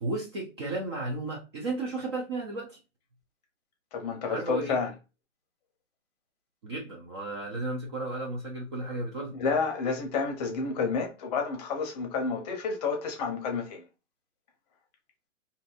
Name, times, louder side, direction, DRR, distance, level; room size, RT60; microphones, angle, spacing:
voice 1, 0.0-2.8 4.3-4.8 6.6-9.4, right 2 dB, 25° right, 0.4 m, -34 dB
voice 2, 3.9-4.9 9.3-13.8, left 5 dB, 35° left, 0.7 m, -30 dB
2.6 x 2.6 x 2.2 m
hypercardioid pair, 135°, 37 cm